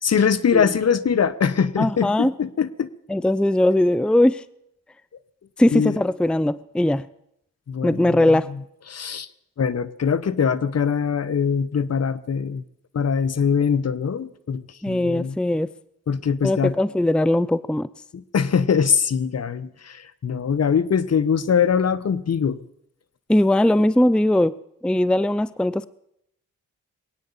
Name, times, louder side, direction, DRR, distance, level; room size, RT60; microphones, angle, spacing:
voice 1, 0.0-2.9 5.7-6.0 7.7-8.3 8.9-9.3 9.6-12.6 12.9-15.4 16.1-16.7 18.1-22.6, left 6 dB, 55° left, 16 dB, 1.0 m, -22 dB
voice 2, 1.8-2.3 3.1-4.4 5.6-7.1 7.8-8.5 14.8-15.7 16.4-17.9 23.3-24.5 24.8-25.9, left 1 dB, 5° left, 18 dB, 0.5 m, -20 dB
20.5 x 9.2 x 7.2 m, 0.76 s
supercardioid pair, 45°, 31 cm